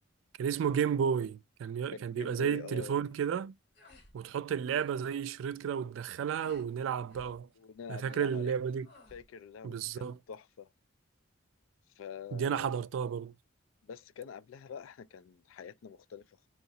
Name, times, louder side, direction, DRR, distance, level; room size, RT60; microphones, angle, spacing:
voice 1, 0.4-3.5 4.1-7.5 7.9-8.9 9.6-10.2 12.3-13.3, right 7 dB, 70° right, 0.3 m, -32 dB
voice 2, 1.9-3.0 3.9-4.0 7.6-8.5 9.1-10.7 12.0-12.9 13.8-16.5, left 6 dB, 80° left, 0.3 m, -46 dB
sound 1, 3.1-3.4 3.7-4.1 4.4-5.0 5.3-5.6 6.3-6.7 7.1-7.4 8.0-8.5 8.8-9.2, left 2 dB, 55° left, 1.4 m, -58 dB
3.8 x 2.4 x 2.7 m
head